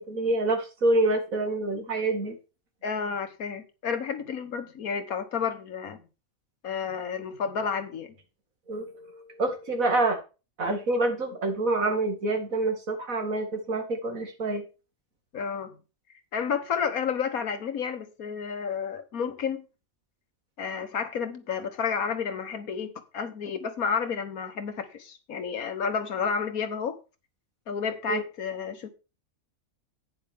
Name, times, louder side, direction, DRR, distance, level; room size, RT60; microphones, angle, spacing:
voice 1, 0.0-2.4 8.7-10.2 10.6-14.6 28.1-28.2, right 2 dB, 75° right, 2.7 m, -27 dB
voice 2, 2.8-6.0 6.6-8.1 15.3-15.8 16.3-19.6 20.6-27.0 27.7-28.9, left 6 dB, 80° left, 1.7 m, -31 dB
11.0 x 9.4 x 3.6 m
omnidirectional pair, 1.5 m